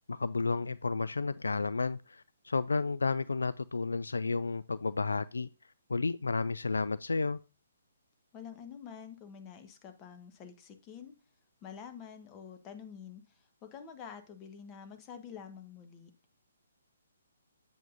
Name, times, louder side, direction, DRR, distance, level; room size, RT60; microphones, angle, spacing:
voice 1, 0.1-5.5 5.9-7.4, left 4 dB, 70° left, 0.3 m, -32 dB
voice 2, 8.3-11.1 11.6-16.1, left 7 dB, 20° left, 1.2 m, -48 dB
8.4 x 8.2 x 2.7 m
figure-of-eight pair, 130°, 0 cm